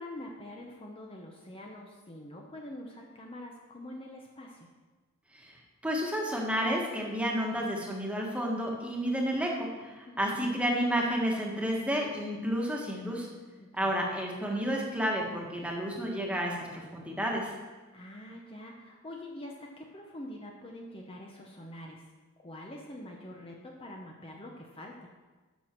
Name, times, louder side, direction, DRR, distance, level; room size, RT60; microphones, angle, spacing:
voice 1, 0.0-4.7 10.0-10.5 13.6-14.0 17.9-22.0 22.4-25.1, left 1 dB, 25° left, 0 dB, 0.9 m, -45 dB
voice 2, 5.8-13.3 13.8-17.5, equal, 5° right, -1 dB, 1.5 m, -31 dB
12.5 x 6.2 x 4.6 m, 1.3 s
head